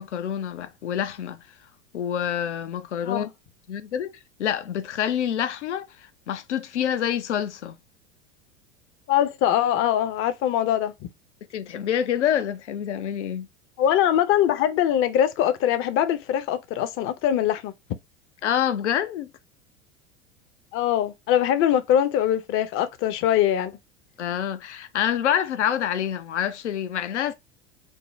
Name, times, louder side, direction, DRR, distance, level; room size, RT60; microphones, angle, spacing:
voice 1, 0.0-1.4 1.9-3.3 3.7-7.8 11.5-13.5 18.4-19.3 24.2-27.3, left 9 dB, 75° left, 0.6 m, -27 dB
voice 2, 9.1-10.9 13.8-17.7 20.7-23.8, left 10 dB, 35° left, 0.6 m, -22 dB
5.2 x 2.1 x 3.2 m
figure-of-eight pair, 80°, 35 cm